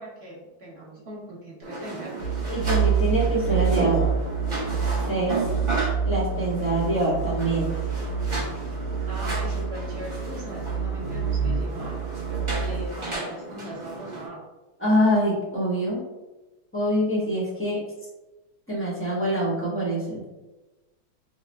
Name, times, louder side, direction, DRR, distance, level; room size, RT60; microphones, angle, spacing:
voice 1, 0.0-2.4 9.1-12.0 12.6-14.4, right 1 dB, 40° right, -5 dB, 1.0 m, -40 dB
sound 1, 1.6-14.3, right 2 dB, 25° right, 0.7 m, -33 dB
sound 2, 2.2-12.9, right 6 dB, 90° left, 1.6 m, -27 dB
voice 2, 2.5-4.2 5.1-5.4 6.0-7.7 14.8-16.0 16.7-17.8 18.7-20.2, equal, 10° left, -7 dB, 0.6 m, -25 dB
5.6 x 2.1 x 3.4 m, 1.1 s
omnidirectional pair, 2.2 m